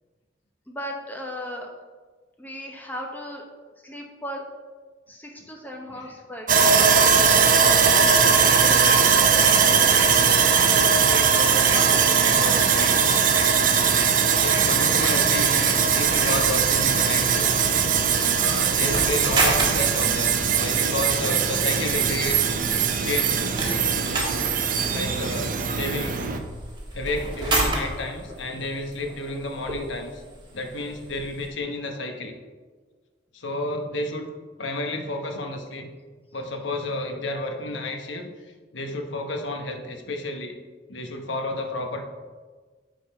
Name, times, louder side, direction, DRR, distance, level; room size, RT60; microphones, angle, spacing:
voice 1, 0.7-1.7 2.4-3.5 3.8-4.4 5.1-6.7 8.1-9.5 9.9-10.1 11.5-13.3, left 1 dB, 10° left, 1 dB, 0.9 m, -37 dB
Sawing, 6.5-26.4, right 6 dB, 45° right, 0.6 m, -20 dB
voice 2, 7.1-8.7 10.5-10.6 11.3-11.9 14.4-17.7 18.3-22.4 23.0-23.4 24.9-26.2 26.9-30.2 30.5-32.3 33.3-36.0 36.3-40.5 40.9-42.0, left 2 dB, 90° left, 4 dB, 1.0 m, -31 dB
sound 1, 7.9-8.0 8.3-14.7 15.0-15.2 15.6-15.8 16.2-16.4, right 3 dB, 75° right, 1.4 m, -35 dB
sound 2, 16.0-31.5, right 2 dB, 25° right, 1.5 m, -33 dB
9.8 x 4.0 x 4.3 m, 1.4 s
head